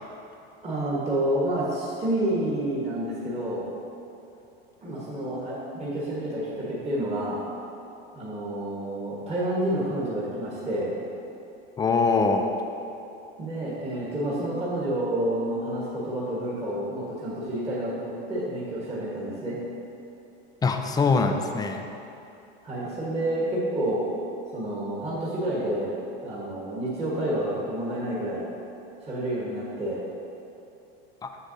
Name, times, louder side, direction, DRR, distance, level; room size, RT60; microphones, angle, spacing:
voice 1, 0.6-3.6 4.8-7.4 8.1-10.9 13.4-19.6 22.6-24.0 24.5-25.9 26.2-28.4 29.0-30.0, right 1 dB, 20° right, -7 dB, 1.5 m, -29 dB
voice 2, 11.8-12.5 20.6-21.9 31.2-31.3, left 4 dB, 15° left, 5 dB, 0.4 m, -23 dB
7.2 x 6.8 x 2.7 m, 2.8 s
supercardioid pair, 105°, 29 cm